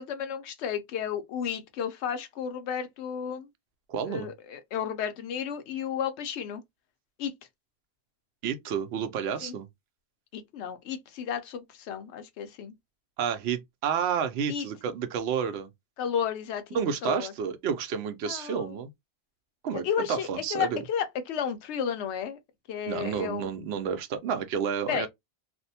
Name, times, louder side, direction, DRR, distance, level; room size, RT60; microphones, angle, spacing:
voice 1, 0.0-3.5 4.1-6.6 7.2-7.3 9.4-9.6 10.3-12.7 14.5-14.7 16.0-17.3 18.3-18.8 19.7-22.4 22.7-23.5 24.9-25.1, left 8 dB, 85° left, 0.9 m, -33 dB
voice 2, 3.9-4.3 8.4-9.7 13.2-15.7 16.7-18.9 19.6-20.8 22.9-25.1, right 7 dB, 75° right, 0.8 m, -30 dB
2.6 x 2.1 x 2.6 m
omnidirectional pair, 1.1 m